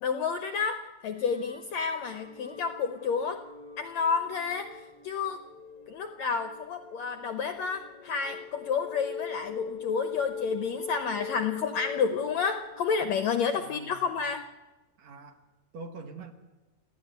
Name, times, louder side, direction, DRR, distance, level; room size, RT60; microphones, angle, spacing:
voice 1, 0.0-3.4 3.8-5.4 5.9-14.4, left 6 dB, 70° left, 7 dB, 1.7 m, -30 dB
sound 1, 1.1-13.4, left 5 dB, 50° left, 1.1 m, -42 dB
voice 2, 13.6-14.2 15.0-15.4 15.7-16.3, right 3 dB, 55° right, 5 dB, 2.6 m, -44 dB
29.5 x 14.0 x 9.4 m, 1.2 s
omnidirectional pair, 4.1 m